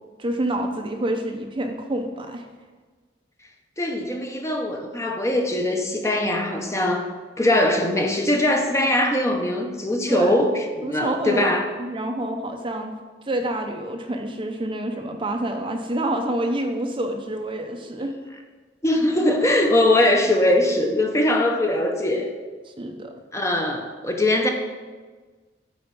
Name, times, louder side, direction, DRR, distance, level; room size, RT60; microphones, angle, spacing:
voice 1, 0.2-2.5 10.1-10.4 10.8-11.5 11.8-13.0 13.3-18.1 22.8-23.1, right 1 dB, 30° right, 4 dB, 0.6 m, -27 dB
voice 2, 3.8-7.1 7.4-10.5 10.8-11.7 18.8-22.3 23.3-24.5, left 1 dB, 15° left, 3 dB, 0.7 m, -21 dB
8.9 x 4.3 x 5.3 m, 1.4 s
head